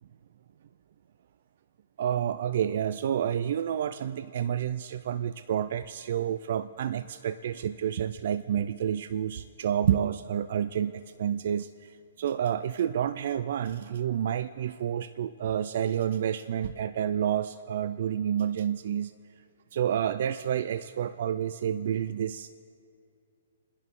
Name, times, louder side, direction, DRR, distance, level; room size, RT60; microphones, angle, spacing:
voice 1, 2.0-19.1 19.7-22.5, right 9 dB, 55° right, 13 dB, 0.4 m, -29 dB
29.5 x 10.5 x 3.7 m, 2.6 s
hypercardioid pair, 155°, 0 cm